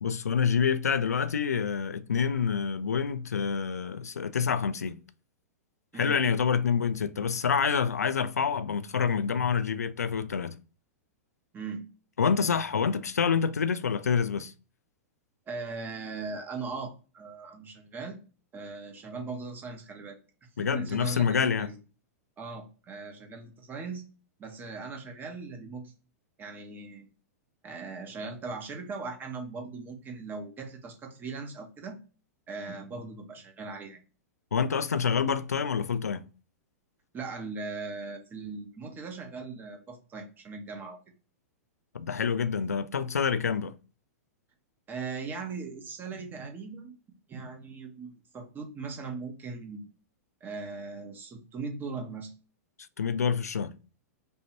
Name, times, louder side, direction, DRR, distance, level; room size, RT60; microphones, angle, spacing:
voice 1, 0.0-5.0 5.9-10.6 12.2-14.5 20.6-21.7 34.5-36.3 41.9-43.7 53.0-53.7, left 6 dB, 85° left, 0.4 m, -27 dB
voice 2, 11.5-11.9 15.5-18.2 18.5-20.2 20.6-21.7 22.4-24.0 24.4-25.9 26.4-27.1 27.6-32.0 32.5-34.0 37.1-41.0 44.9-46.9 47.3-49.9 50.4-52.3, right 4 dB, 25° right, 1.3 m, -39 dB
5.4 x 2.8 x 2.8 m
hypercardioid pair, 105°, 8 cm